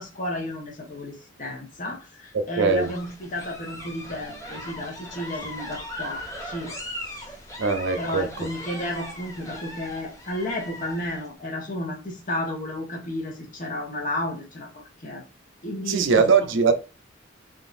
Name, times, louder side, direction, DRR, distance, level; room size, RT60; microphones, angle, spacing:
voice 1, 0.0-6.7 8.0-15.2 15.6-16.3, left 1 dB, 45° left, 1.1 m, -32 dB
voice 2, 2.3-2.9 7.6-8.5 15.9-16.7, right 5 dB, 85° right, 0.5 m, -21 dB
sound 1, 2.7-11.3, left 1 dB, 15° left, 1.2 m, -38 dB
3.5 x 2.7 x 2.5 m
head